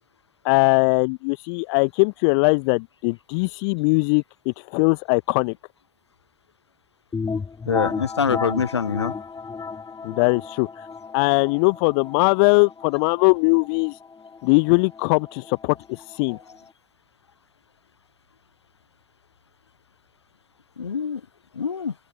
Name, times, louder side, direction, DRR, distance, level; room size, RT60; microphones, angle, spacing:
voice 1, 0.4-5.6 10.0-10.8 11.1-14.0 14.4-16.4, left 33 dB, 65° left, 0.9 m, -20 dB
sound 1, 7.1-16.7, left 5 dB, 25° left, 1.8 m, -34 dB
voice 2, 7.7-9.2 16.3-16.4 20.8-21.2 21.6-21.9, left 6 dB, 85° left, 0.5 m, -25 dB
open air
figure-of-eight pair, 50°, 14 cm